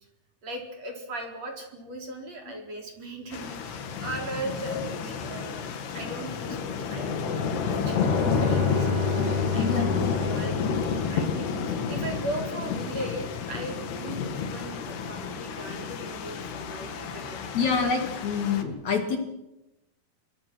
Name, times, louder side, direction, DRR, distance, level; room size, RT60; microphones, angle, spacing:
voice 1, 0.4-5.7 5.9-8.2 8.5-17.4, right 1 dB, 40° right, 2 dB, 5.0 m, -38 dB
sound 1, 3.3-18.6, left 5 dB, 85° left, 4.1 m, -30 dB
Bowed string instrument, 7.8-11.5, left 5 dB, 80° right, 6.1 m, -30 dB
voice 2, 9.6-10.1 17.5-19.2, left 5 dB, 50° left, 4 dB, 3.5 m, -27 dB
27.5 x 23.0 x 6.3 m, 0.92 s
omnidirectional pair, 4.6 m